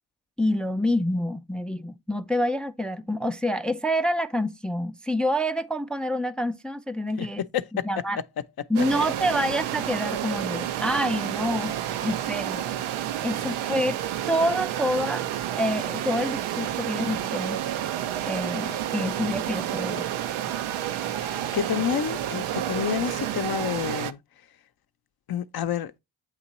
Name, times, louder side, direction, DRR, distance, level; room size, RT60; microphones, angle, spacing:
voice 1, 0.4-7.4 7.7-8.2 8.7-11.7 12.0-12.7 13.2-14.0 14.3-15.3 15.6-17.6 18.2-20.1, equal, ahead, 0.4 m, -27 dB
voice 2, 7.2-7.9 21.1-24.2 25.3-26.0, left 9 dB, 50° left, 0.7 m, -29 dB
sound 1, 8.8-24.1, right 11 dB, 85° right, 0.6 m, -30 dB
8.4 x 2.9 x 4.0 m
supercardioid pair, 40°, 49 cm